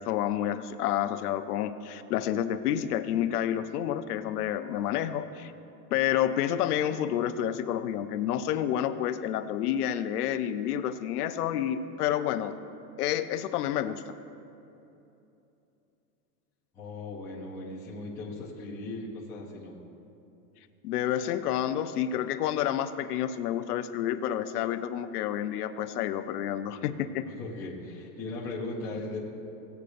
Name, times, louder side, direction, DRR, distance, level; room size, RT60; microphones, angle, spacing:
voice 1, 0.1-5.5 5.9-12.6 13.0-14.0 20.8-27.3, left 10 dB, 70° left, 10 dB, 0.6 m, -29 dB
voice 2, 16.7-19.7 27.3-29.2, left 2 dB, 5° left, -6 dB, 0.4 m, -38 dB
16.5 x 8.1 x 2.5 m, 2.8 s
supercardioid pair, 160°, 48 cm